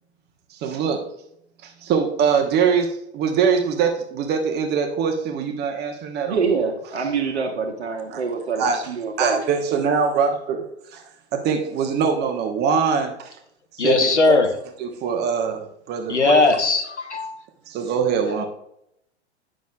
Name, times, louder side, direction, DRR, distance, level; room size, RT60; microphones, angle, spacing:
voice 1, 0.5-1.1 1.6-6.4 7.0-7.1 8.1-8.2 8.6-8.9 9.2-11.0 11.3-13.3 13.7-14.4 14.8-16.4 17.7-18.5, right 6 dB, 30° right, 1.0 m, -23 dB
voice 2, 6.3-9.4, right 5 dB, 70° right, 1.2 m, -25 dB
voice 3, 13.8-14.5 16.1-17.4, left 3 dB, 85° left, 1.0 m, -18 dB
10.5 x 6.2 x 2.3 m
figure-of-eight pair, 95°, 34 cm